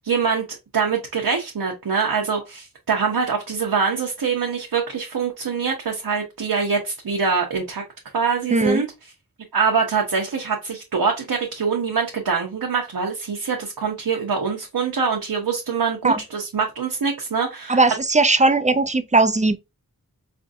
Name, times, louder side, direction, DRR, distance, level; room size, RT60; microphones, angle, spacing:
voice 1, 0.0-0.4 0.7-7.8 8.1-8.9 9.5-17.8, right 5 dB, 80° right, 0.8 m, -24 dB
voice 2, 8.5-8.8 16.0-16.2 17.7-19.6, right 3 dB, 20° right, 0.4 m, -18 dB
4.3 x 2.5 x 2.5 m
wide cardioid pair, 55°, 36 cm